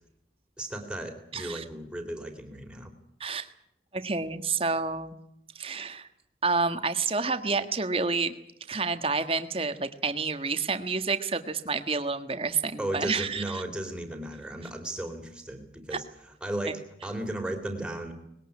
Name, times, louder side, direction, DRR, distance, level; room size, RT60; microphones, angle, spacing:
voice 1, 0.6-2.9 12.8-16.0 16.4-18.1, right 1 dB, 5° right, 4 dB, 3.6 m, -35 dB
voice 2, 1.3-1.6 3.2-3.5 3.9-5.1 5.5-6.1 6.4-8.3 8.7-13.6, right 4 dB, 30° right, 9 dB, 1.6 m, -29 dB
20.5 x 18.0 x 9.8 m, 0.76 s
head